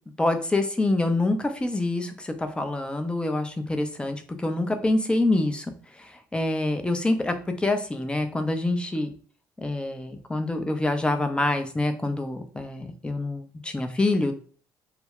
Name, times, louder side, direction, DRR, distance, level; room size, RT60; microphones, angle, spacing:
voice 1, 0.2-9.1 9.6-14.3, left 2 dB, 10° left, 7 dB, 0.5 m, -26 dB
2.3 x 2.1 x 3.5 m, 0.43 s
figure-of-eight pair, 45°, 10 cm